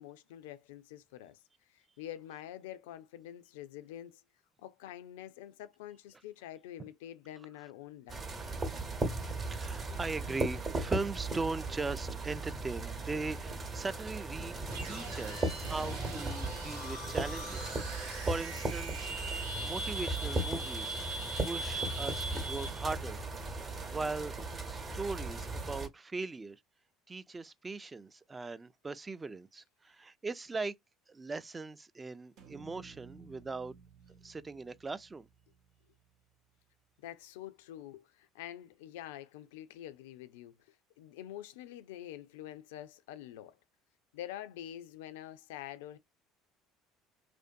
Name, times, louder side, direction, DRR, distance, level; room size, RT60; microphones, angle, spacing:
voice 1, 0.0-1.4 1.7-4.2 4.6-8.3 37.0-40.5 41.0-43.6 44.1-46.0, left 12 dB, 75° left, 0.3 m, -46 dB
sound 1, 8.1-25.9, right 2 dB, 40° right, 0.9 m, -37 dB
voice 2, 9.5-14.5 14.8-21.0 21.4-23.2 23.9-24.3 24.7-26.6 27.1-30.7 31.1-33.8 34.2-35.3, right 3 dB, 25° right, 0.3 m, -39 dB
sound 2, 14.7-22.9, right 2 dB, 85° right, 0.9 m, -41 dB
sound 3, 32.4-36.6, right 5 dB, 60° right, 0.6 m, -57 dB
2.5 x 2.2 x 2.5 m
hypercardioid pair, 65°, 0 cm